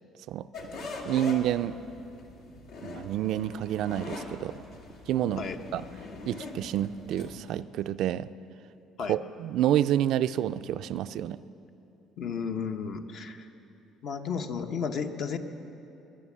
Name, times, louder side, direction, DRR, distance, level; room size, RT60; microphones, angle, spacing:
sound 1, 0.5-7.4, left 3 dB, 85° left, 2.0 m, -42 dB
voice 1, 1.0-1.8 2.8-4.6 5.1-5.5 5.7-5.8 6.3-8.3 9.1-11.4, right 11 dB, 70° right, 13 dB, 0.4 m, -28 dB
voice 2, 12.2-13.5 14.0-15.4, left 6 dB, 60° left, 6 dB, 1.0 m, -33 dB
21.5 x 8.4 x 7.3 m, 2.8 s
cardioid pair, 100°, 0 cm